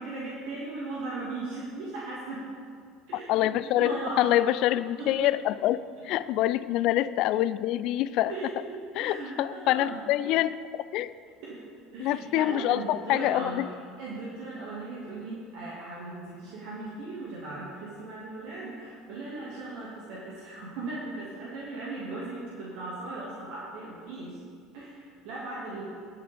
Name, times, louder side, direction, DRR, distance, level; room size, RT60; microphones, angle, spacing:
voice 1, 0.0-2.4 3.1-4.3 5.0-5.1 8.3-10.0 11.4-11.6 11.9-13.6 14.0-24.4 24.7-25.8, right 2 dB, 60° right, -6 dB, 2.6 m, -38 dB
voice 2, 3.1-8.3 9.0-10.6 10.9-11.1 12.0-13.7, left 13 dB, 55° left, 16 dB, 0.4 m, -26 dB
22.0 x 8.5 x 3.9 m, 2.2 s
figure-of-eight pair, 65°, 0 cm